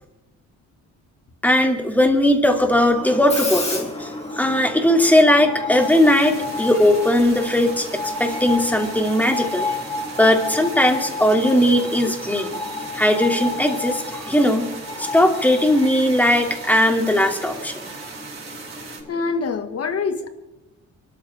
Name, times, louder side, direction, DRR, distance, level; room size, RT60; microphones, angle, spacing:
voice 1, 1.4-9.8 10.2-12.5 12.9-14.7 15.0-17.7, left 1 dB, 5° left, 2.8 m, -18 dB
Screech, 3.0-19.5, left 3 dB, 20° left, 4.5 m, -32 dB
sound 1, 5.8-19.0, right 4 dB, 40° right, 5.2 m, -38 dB
voice 2, 19.1-20.3, left 4 dB, 50° left, 2.0 m, -25 dB
24.5 x 13.5 x 3.6 m
cardioid pair, 90°, 30 cm